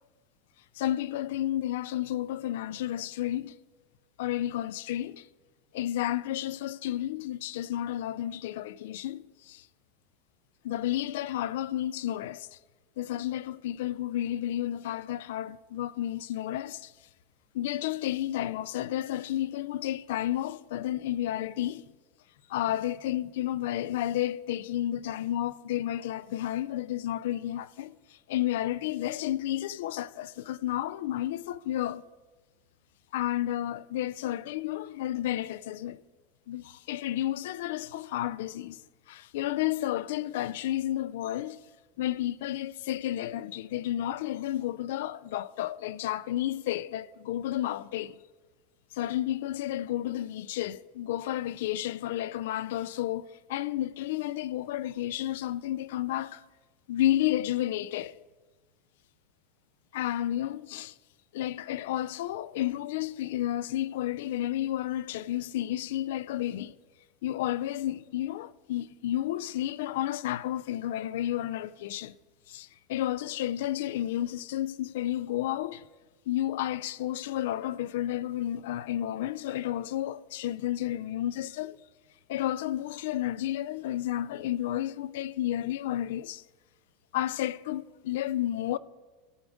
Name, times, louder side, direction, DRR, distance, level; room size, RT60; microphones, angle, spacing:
voice 1, 0.8-3.6 4.2-5.3 5.7-9.7 10.6-12.5 13.0-16.9 17.5-21.8 22.5-27.9 28.3-32.0 33.1-36.0 36.5-38.8 39.1-41.6 42.0-48.2 48.9-56.4 56.9-58.2 59.9-60.9 61.3-66.7 67.2-72.2 72.5-75.8 76.3-81.8 82.3-86.4 87.1-88.8, left 13 dB, 70° left, 0.3 m, -31 dB
14.0 x 4.9 x 5.1 m
supercardioid pair, 160°, 0 cm